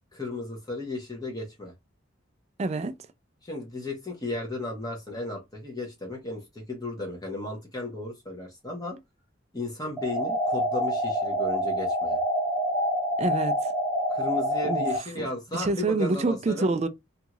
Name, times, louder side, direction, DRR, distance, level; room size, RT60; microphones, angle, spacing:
voice 1, 0.1-1.7 3.4-9.0 9.5-12.2 14.1-16.7, left 2 dB, 20° left, 0.8 m, -35 dB
voice 2, 2.6-3.0 13.2-13.7 14.6-14.9 15.2-15.3 15.5-16.9, right 3 dB, 35° right, 0.3 m, -27 dB
sound 1, 10.0-15.0, equal, 10° right, 1.0 m, -27 dB
2.7 x 2.4 x 2.9 m
head